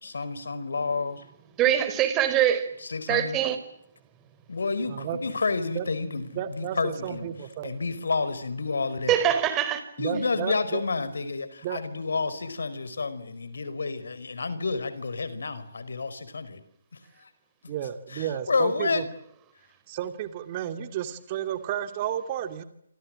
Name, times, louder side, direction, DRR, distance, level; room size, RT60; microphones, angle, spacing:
voice 1, 0.0-1.2 2.8-3.4 4.5-7.4 7.6-9.2 10.0-16.6 17.2-17.3 17.6-17.7 18.1-19.0, left 4 dB, 75° left, 14 dB, 4.9 m, -30 dB
voice 2, 1.6-2.7 3.1-3.6 9.1-9.8, right 10 dB, 20° right, 10 dB, 4.7 m, -23 dB
voice 3, 6.4-7.7 10.0-10.8 11.6-11.8 17.7-19.0 19.9-22.6, right 10 dB, 35° right, 9 dB, 2.5 m, -32 dB
28.0 x 26.5 x 7.7 m, 0.73 s
figure-of-eight pair, 145°, 0 cm